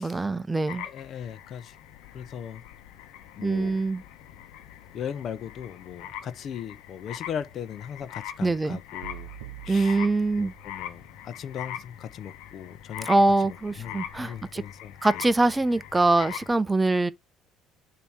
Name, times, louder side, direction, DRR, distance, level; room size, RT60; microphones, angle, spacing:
voice 1, 0.0-0.9 3.4-4.0 8.4-8.8 9.7-10.5 13.1-14.6 15.0-17.1, right 2 dB, 15° right, 0.5 m, -23 dB
sound 1, 0.7-16.5, left 10 dB, 75° left, 1.0 m, -42 dB
voice 2, 0.7-1.8 2.1-2.6 3.4-3.7 4.9-9.3 9.6-10.0 10.4-13.1 13.4-15.2, left 8 dB, 55° left, 0.7 m, -38 dB
sound 2, 9.0-11.1, right 14 dB, 90° right, 0.4 m, -45 dB
6.9 x 2.9 x 4.7 m
supercardioid pair, 75°, 0 cm